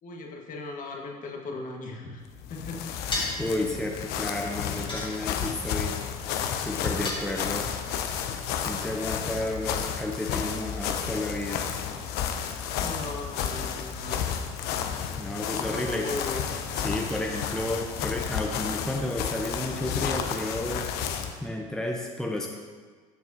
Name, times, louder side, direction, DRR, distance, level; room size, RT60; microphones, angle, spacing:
voice 1, 0.0-2.2 2.5-2.8 7.5-8.0 12.7-14.2 15.6-16.4 17.1-17.2, left 3 dB, 50° left, 0 dB, 1.6 m, -38 dB
sound 1, 2.3-21.4, left 8 dB, 65° left, 0.7 m, -32 dB
sound 2, 3.1-3.5 4.9-5.6 7.0-7.8, left 2 dB, 25° left, 1.7 m, -33 dB
voice 2, 3.4-6.0 6.6-7.7 8.6-11.7 15.2-16.1 16.8-20.9 21.4-22.5, left 1 dB, 5° left, 0 dB, 0.8 m, -32 dB
13.5 x 4.7 x 2.8 m, 1.5 s
hypercardioid pair, 70°, 18 cm